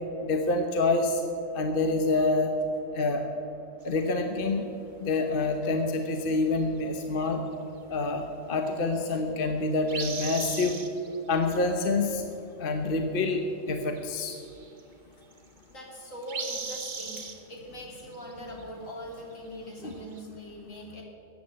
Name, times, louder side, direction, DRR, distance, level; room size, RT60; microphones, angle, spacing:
voice 1, 0.2-1.1 1.5-2.5 2.9-3.2 3.8-4.7 5.0-7.4 7.9-8.2 8.5-10.8 11.3-12.2 12.6-14.3 19.8-19.9, left 3 dB, 45° left, 5 dB, 1.2 m, -27 dB
sound 1, 3.8-4.2 9.9-11.2 11.4-11.6 13.7-13.8 14.0-14.8 15.3-15.8 16.3-17.4 18.0-18.3 18.6-18.7 19.9-20.2, right 4 dB, 35° right, 1.2 m, -37 dB
voice 2, 15.7-21.0, equal, 70° left, -1 dB, 3.1 m, -41 dB
14.5 x 9.2 x 7.5 m, 2.8 s
omnidirectional pair, 1.4 m